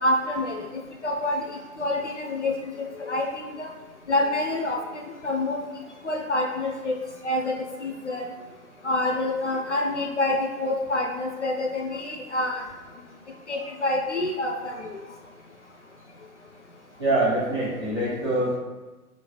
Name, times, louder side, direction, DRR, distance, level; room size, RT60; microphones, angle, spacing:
voice 1, 0.0-0.7 1.0-1.4 1.8-2.5 3.1-3.7 4.1-5.6 6.0-6.9 7.2-7.5 7.8-8.3 8.8-12.6 13.5-14.9, left 1 dB, 50° left, 0 dB, 0.5 m, -27 dB
voice 2, 17.0-18.6, right 1 dB, 20° right, -11 dB, 0.7 m, -24 dB
4.1 x 2.8 x 3.0 m, 1.2 s
hypercardioid pair, 160°, 46 cm